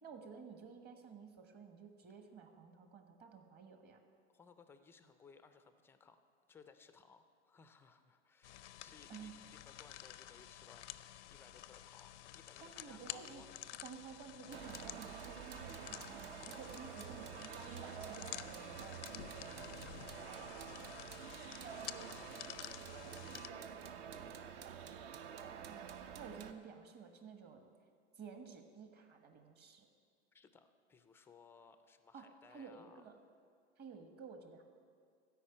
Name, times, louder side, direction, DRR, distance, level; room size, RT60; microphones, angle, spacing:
voice 1, 0.0-4.0 9.1-9.3 12.6-13.5 13.8-20.1 25.5-25.9 26.2-27.7 28.2-29.9 32.1-33.1 33.8-34.6, right 5 dB, 30° right, 5 dB, 1.2 m, -53 dB
voice 2, 4.3-6.2 6.5-10.9 11.3-13.5 20.0-21.4 21.8-24.7 30.3-33.0, left 5 dB, 5° left, 9 dB, 0.3 m, -63 dB
sound 1, 8.4-23.5, left 12 dB, 90° left, 0.6 m, -51 dB
sound 2, 14.5-26.5, right 8 dB, 60° right, 0.8 m, -48 dB
13.0 x 5.3 x 8.8 m, 2.2 s
hypercardioid pair, 125°, 34 cm